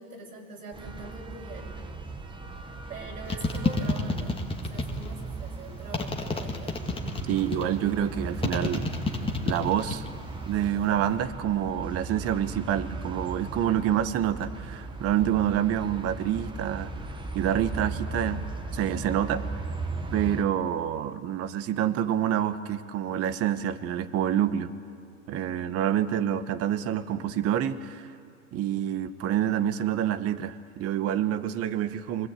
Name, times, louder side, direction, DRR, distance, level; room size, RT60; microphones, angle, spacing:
voice 1, 0.0-1.8 2.9-6.9, right 3 dB, 90° right, -3 dB, 5.4 m, -43 dB
sound 1, 0.7-20.4, right 3 dB, 10° right, 1.2 m, -37 dB
sound 2, 3.3-5.1 5.9-7.8 8.4-10.1 10.4-11.0, left 3 dB, 10° left, 1.8 m, -29 dB
voice 2, 7.3-8.9 9.4-10.0 10.5-16.9 17.3-18.4 18.7-19.4 20.1-24.7 25.3-28.1 28.5-32.3, right 10 dB, 35° right, 12 dB, 1.1 m, -27 dB
25.0 x 19.0 x 8.4 m, 2.3 s
hypercardioid pair, 115°, 44 cm